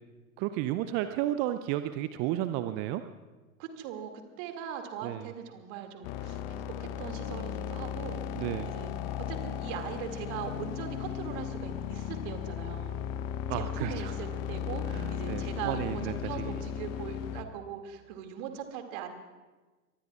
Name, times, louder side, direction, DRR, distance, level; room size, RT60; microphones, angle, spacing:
voice 1, 0.4-3.0 5.0-5.3 8.3-8.7 13.5-14.2 14.9-16.5, right 13 dB, 25° right, 11 dB, 0.4 m, -32 dB
voice 2, 3.6-4.1 4.4-8.9 9.3-13.0 13.5-19.1, right 8 dB, 45° right, 5 dB, 2.4 m, -40 dB
sound 1, 6.0-17.4, left 9 dB, 35° left, 0.9 m, -36 dB
26.0 x 23.0 x 2.4 m, 1.3 s
figure-of-eight pair, 95°, 44 cm